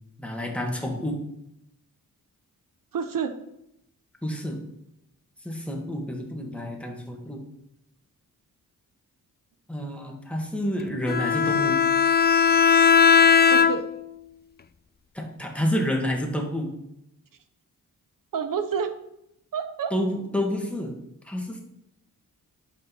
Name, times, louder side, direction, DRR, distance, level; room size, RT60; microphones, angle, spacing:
voice 1, 0.2-1.2 4.2-4.6 5.4-7.4 9.7-11.8 15.1-16.7 19.9-21.0 21.2-21.6, equal, 5° left, 1 dB, 1.9 m, -29 dB
voice 2, 2.9-3.3 13.5-13.9 18.3-18.9 19.5-19.9, right 7 dB, 65° right, 9 dB, 0.8 m, -28 dB
Bowed string instrument, 11.1-14.1, left 6 dB, 30° left, 0.4 m, -18 dB
8.8 x 5.3 x 5.5 m, 0.80 s
cardioid pair, 85°, 35 cm